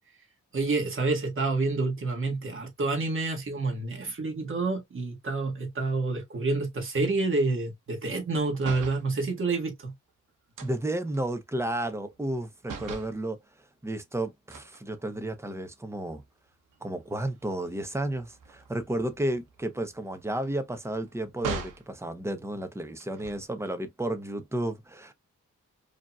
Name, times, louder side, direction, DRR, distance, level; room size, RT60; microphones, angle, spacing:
voice 1, 0.5-9.9, right 3 dB, 40° right, 1.6 m, -28 dB
sound 1, 8.5-9.1 10.6-12.4 12.6-13.2 14.5-15.5 16.0-16.2 16.5-21.9 23.0-23.7, right 4 dB, 90° right, 1.0 m, -42 dB
voice 2, 10.6-13.4 13.8-16.2 16.8-25.1, right 1 dB, 10° right, 0.7 m, -32 dB
5.0 x 2.9 x 2.3 m
wide cardioid pair, 130°, 31 cm